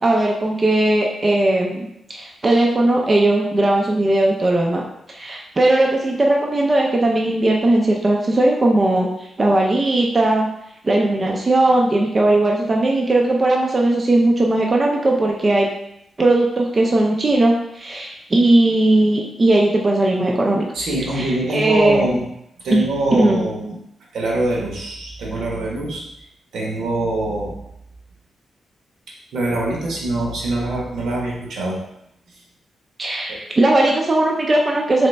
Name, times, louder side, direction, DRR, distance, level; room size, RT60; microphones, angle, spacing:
voice 1, 0.0-4.8 5.1-9.1 9.4-10.5 10.8-15.7 16.2-20.6 21.1-22.1 22.7-23.4 33.0-35.1, right 2 dB, 25° right, -1 dB, 0.4 m, -18 dB
voice 2, 20.7-22.3 22.6-23.8 24.1-26.1 26.5-27.6 29.1-31.8 33.3-33.4, right 2 dB, 85° right, -2 dB, 1.1 m, -24 dB
4.0 x 3.1 x 3.2 m, 0.79 s
wide cardioid pair, 170°, 0 cm